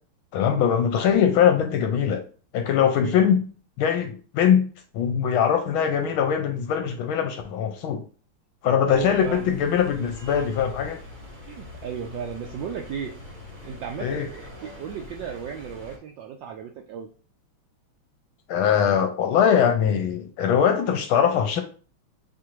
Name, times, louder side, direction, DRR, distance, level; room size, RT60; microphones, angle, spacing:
voice 1, 0.3-2.2 2.5-3.4 3.8-4.6 4.9-8.0 8.6-11.0 14.0-14.3 18.5-21.6, left 8 dB, 80° left, 6 dB, 1.3 m, -21 dB
sound 1, 8.9-16.0, left 2 dB, 35° right, 0.8 m, -43 dB
voice 2, 8.9-9.6 10.7-10.8 11.5-13.1 13.6-17.1, right 7 dB, 75° right, 2 dB, 1.1 m, -35 dB
6.1 x 2.6 x 2.9 m, 0.39 s
omnidirectional pair, 2.4 m